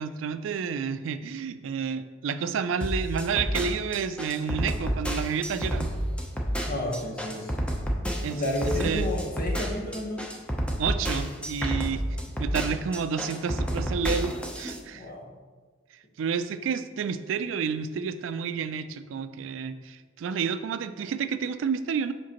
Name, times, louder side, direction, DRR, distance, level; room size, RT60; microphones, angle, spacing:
voice 1, 0.0-5.9 8.2-8.4 8.8-9.1 10.8-15.1 15.9-22.1, right 6 dB, 75° right, 12 dB, 0.3 m, -30 dB
sound 1, 2.8-14.8, equal, 5° left, 0.6 m, -29 dB
voice 2, 6.6-7.9 8.3-10.3 11.6-11.7 14.9-15.3, left 1 dB, 50° left, 1 dB, 1.1 m, -32 dB
7.4 x 5.1 x 2.9 m, 1.5 s
head